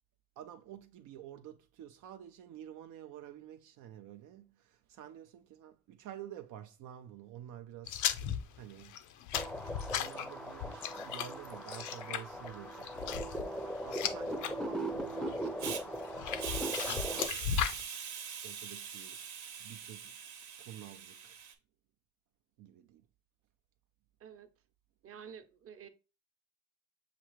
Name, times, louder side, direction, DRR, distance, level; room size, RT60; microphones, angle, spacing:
voice 1, 0.4-8.1 8.5-9.0 9.9-16.0 17.1-17.8 18.4-19.2 19.6-20.2 20.6-21.4 22.6-23.1, right 11 dB, 85° right, 0.5 m, -50 dB
sound 1, 7.9-14.5 14.9-15.4 16.0-17.8, left 9 dB, 75° left, 0.5 m, -36 dB
sound 2, 9.3-17.3, right 1 dB, ahead, 0.5 m, -39 dB
Hiss, 15.6-15.8 16.4-21.5, right 7 dB, 70° right, 0.9 m, -42 dB
voice 2, 25.0-25.9, right 8 dB, 50° right, 0.7 m, -50 dB
6.6 x 2.4 x 3.1 m
cardioid pair, 90°, 30 cm